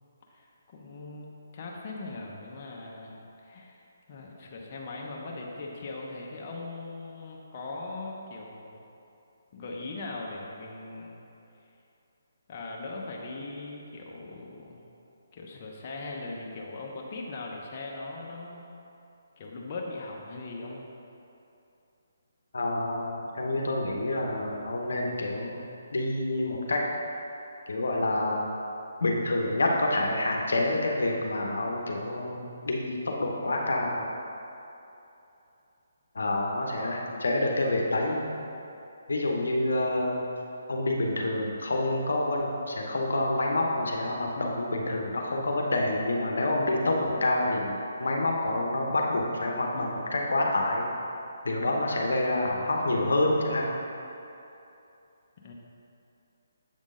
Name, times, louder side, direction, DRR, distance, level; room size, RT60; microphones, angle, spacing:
voice 1, 0.3-1.3 1.5-3.8 4.1-8.8 9.5-11.2 12.5-14.8 15.3-18.7 19.4-20.8 36.7-37.2 55.4-55.5, left 3 dB, 40° left, -2 dB, 0.7 m, -40 dB
voice 2, 22.5-25.7 25.9-26.8 27.7-28.5 29.0-34.0 36.1-38.3 39.1-40.3 40.7-50.9 51.4-53.7, left 2 dB, 80° left, 0 dB, 0.8 m, -27 dB
7.3 x 3.7 x 3.7 m, 2.8 s
hypercardioid pair, 150°, 0 cm